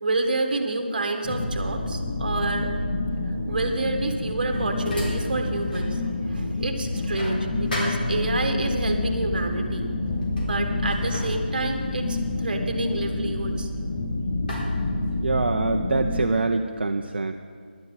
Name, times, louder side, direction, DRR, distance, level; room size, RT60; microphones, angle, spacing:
voice 1, 0.0-2.7 3.5-9.9 10.4-13.7, right 2 dB, 55° right, 5 dB, 1.6 m, -28 dB
sound 1, 1.2-16.3, left 2 dB, 30° left, 1.4 m, -28 dB
sound 2, 3.9-6.0 6.3-8.6 9.5-9.8 10.1-14.0 14.5-15.6, left 1 dB, 55° left, 4.1 m, -38 dB
voice 2, 15.2-17.3, right 3 dB, 70° right, 4 dB, 0.7 m, -25 dB
16.0 x 11.5 x 4.0 m, 2.1 s
figure-of-eight pair, 165°, 6 cm